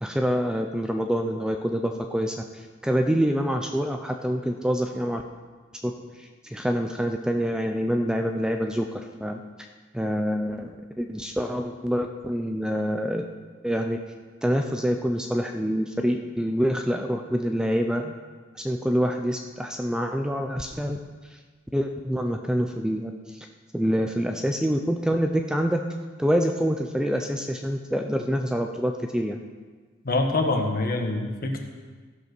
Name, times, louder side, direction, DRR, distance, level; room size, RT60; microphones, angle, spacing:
voice 1, 0.0-5.2 5.8-5.9 6.2-9.4 9.9-13.2 13.6-14.0 14.4-18.1 18.6-21.0 21.7-23.5 23.7-25.8 26.2-29.4, equal, 5° right, 4 dB, 0.4 m, -26 dB
voice 2, 30.0-31.6, left 2 dB, 45° left, 2 dB, 1.3 m, -25 dB
14.0 x 5.5 x 6.0 m, 1.4 s
head